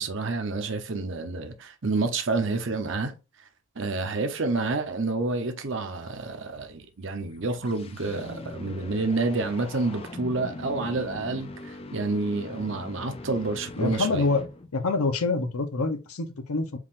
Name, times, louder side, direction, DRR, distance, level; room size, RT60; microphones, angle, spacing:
voice 1, 0.0-3.1 3.8-14.3, right 3 dB, 60° right, 0.8 m, -29 dB
sound 1, 7.1-14.9, left 2 dB, 25° left, 0.4 m, -41 dB
voice 2, 13.8-14.4 14.7-16.8, left 3 dB, 85° left, 0.8 m, -26 dB
4.7 x 3.7 x 2.5 m
head